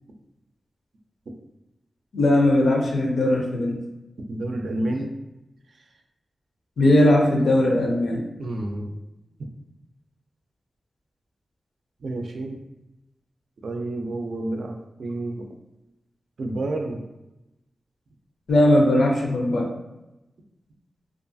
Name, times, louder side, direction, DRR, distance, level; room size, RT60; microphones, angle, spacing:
voice 1, 2.1-3.8 6.8-8.2 18.5-19.7, left 1 dB, 90° left, 0 dB, 0.5 m, -19 dB
voice 2, 4.3-5.1 8.4-8.9 12.0-12.6 13.6-15.5 16.4-17.0, right 2 dB, 70° right, 3 dB, 0.4 m, -29 dB
2.5 x 2.3 x 2.5 m, 0.96 s
wide cardioid pair, 110°, 0 cm